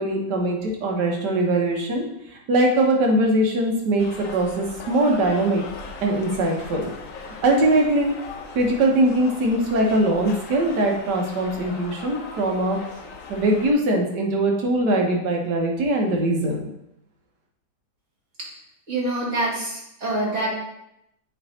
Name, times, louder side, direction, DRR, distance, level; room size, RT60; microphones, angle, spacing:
voice 1, 0.0-2.0 2.3-5.6 6.0-6.9 7.4-8.1 8.5-12.8 13.3-16.6, right 1 dB, 75° right, 1 dB, 1.7 m, -21 dB
sound 1, 4.0-13.7, left 4 dB, 60° left, 1.0 m, -39 dB
voice 2, 18.9-20.5, right 1 dB, 45° right, -6 dB, 2.2 m, -26 dB
7.9 x 3.4 x 4.1 m, 0.83 s
omnidirectional pair, 1.9 m